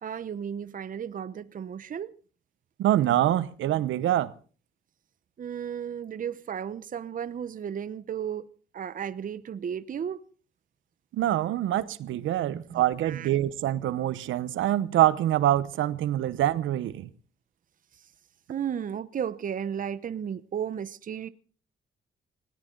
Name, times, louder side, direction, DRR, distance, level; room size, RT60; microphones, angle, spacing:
voice 1, 0.0-2.1 5.4-8.5 8.7-10.2 12.4-13.3 18.5-21.3, right 8 dB, 45° right, 0.8 m, -34 dB
voice 2, 2.8-4.3 11.1-17.1, right 13 dB, 80° right, 0.9 m, -25 dB
20.0 x 18.0 x 3.8 m
cardioid pair, 90°, 20 cm